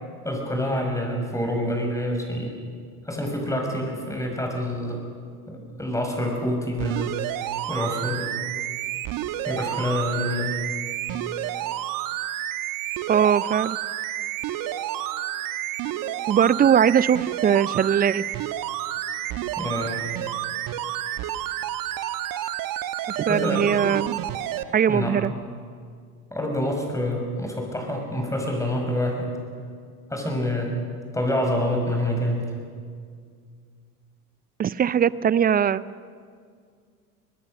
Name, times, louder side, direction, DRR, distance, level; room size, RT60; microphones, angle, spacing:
voice 1, 0.2-2.5 3.1-5.0 5.5-7.2 7.7-8.3 9.5-10.6 19.6-20.1 23.3-23.8 24.9-25.2 26.3-29.4 30.1-30.8 31.1-32.5, left 1 dB, 5° left, 2 dB, 6.1 m, -27 dB
sound 1, 6.8-24.6 25.2-25.3, right 13 dB, 45° right, 1.2 m, -30 dB
voice 2, 13.1-13.8 16.3-18.3 23.2-24.2 24.7-25.3 34.6-35.8, right 8 dB, 20° right, 19 dB, 0.5 m, -20 dB
24.5 x 20.0 x 6.7 m, 2.1 s
hypercardioid pair, 75°, 45 cm